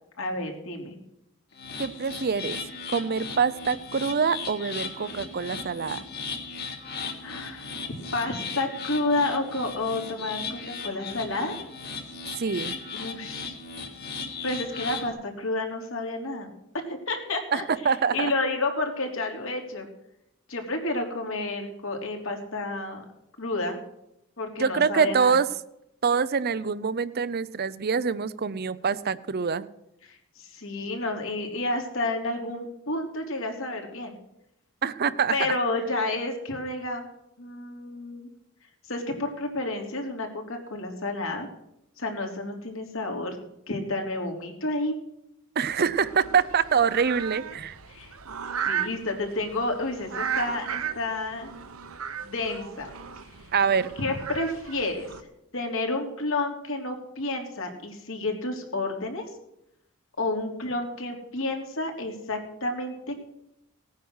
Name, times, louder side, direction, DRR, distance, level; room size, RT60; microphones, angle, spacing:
voice 1, 0.2-1.0 7.2-7.7 8.1-11.6 12.9-13.6 14.4-16.5 16.9-19.9 20.5-23.0 23.4-23.8 24.4-25.3 30.0-34.2 35.3-37.1 37.4-38.3 38.9-41.5 42.0-43.4 43.7-45.0 47.9-48.1 48.6-51.5 52.2-52.9 54.0-55.1 55.5-59.3 60.2-63.1, left 2 dB, 65° left, 2 dB, 3.4 m, -30 dB
sound 1, 1.5-15.1, left 4 dB, 45° left, 3.1 m, -37 dB
voice 2, 1.8-2.6 2.9-6.0 12.4-12.7 17.5-18.3 24.6-25.5 26.0-29.7 34.8-35.5 45.6-47.8 53.5-53.9, right 6 dB, 45° right, 16 dB, 0.6 m, -25 dB
sound 2, 45.7-55.2, right 7 dB, 75° right, 1.1 m, -35 dB
18.5 x 9.4 x 6.4 m, 0.81 s
head